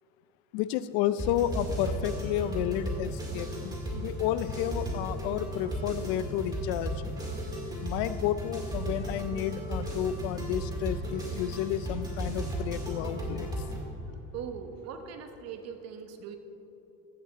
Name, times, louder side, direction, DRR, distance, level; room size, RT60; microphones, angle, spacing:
voice 1, 0.5-7.0 7.8-13.5, left 11 dB, 75° left, 14 dB, 0.5 m, -31 dB
sound 1, 1.2-13.9, right 1 dB, 10° right, 1.9 m, -35 dB
voice 2, 14.1-16.4, right 7 dB, 50° right, 6 dB, 1.0 m, -41 dB
14.5 x 7.5 x 4.0 m, 3.0 s
cardioid pair, 135°, 32 cm